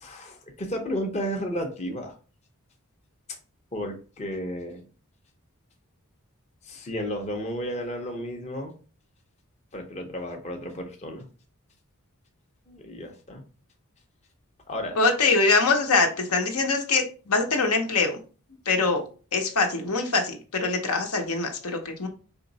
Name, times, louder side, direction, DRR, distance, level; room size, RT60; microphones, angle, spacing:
voice 1, 0.0-2.2 3.7-4.9 6.6-8.7 9.7-11.3 12.7-13.4 14.7-15.0, equal, 30° left, 2 dB, 0.7 m, -33 dB
voice 2, 15.0-18.2 18.7-19.0 19.3-22.1, left 3 dB, 75° left, 3 dB, 1.0 m, -23 dB
4.4 x 3.0 x 4.0 m, 0.37 s
head